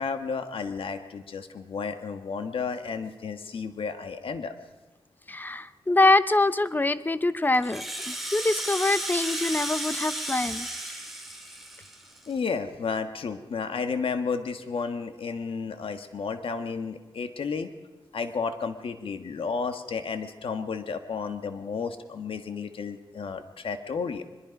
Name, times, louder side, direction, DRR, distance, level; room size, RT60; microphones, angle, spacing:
voice 1, 0.0-4.5 12.3-17.7 18.1-24.2, left 5 dB, 80° left, 8 dB, 1.5 m, -32 dB
voice 2, 5.3-10.7, left 2 dB, 20° left, 14 dB, 0.8 m, -24 dB
Rattle (instrument), 7.5-12.3, right 1 dB, ahead, 3.0 m, -34 dB
23.0 x 21.5 x 5.3 m, 1.2 s
wide cardioid pair, 110°, 9 cm